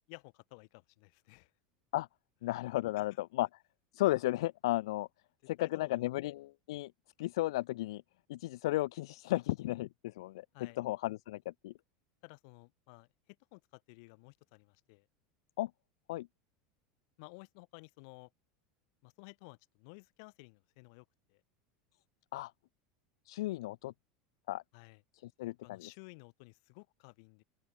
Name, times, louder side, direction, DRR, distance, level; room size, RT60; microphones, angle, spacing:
voice 1, 0.1-1.5 5.6-6.0 10.5-10.8 12.2-13.1 13.5-15.0 17.2-18.3 19.0-21.4 24.7-25.0 25.4-27.4, left 34 dB, 65° left, 4.8 m, -54 dB
voice 2, 2.4-3.5 3.9-5.1 5.5-6.9 7.2-8.0 8.3-11.7 15.6-15.7 16.1-16.3 22.3-22.5 23.3-23.9 24.5-24.6 25.1-25.9, left 17 dB, 85° left, 0.5 m, -34 dB
open air
supercardioid pair, 140°, 3 cm